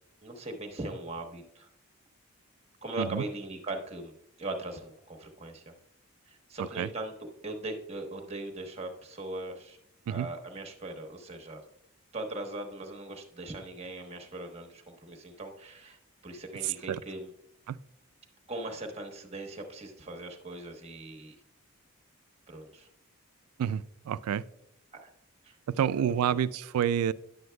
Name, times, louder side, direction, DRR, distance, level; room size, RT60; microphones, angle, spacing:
voice 1, 0.2-1.7 2.8-4.1 4.4-5.7 6.3-7.1 7.4-9.8 10.1-11.6 12.1-16.0 16.2-17.3 18.5-21.4 22.5-22.9 25.0-25.1 25.4-25.9 26.3-26.4, right 2 dB, 30° right, 4 dB, 1.0 m, -40 dB
voice 2, 16.6-17.0 17.7-17.8 23.6-24.4 25.7-27.1, right 9 dB, 90° right, 17 dB, 0.3 m, -29 dB
10.0 x 7.8 x 2.2 m, 0.75 s
head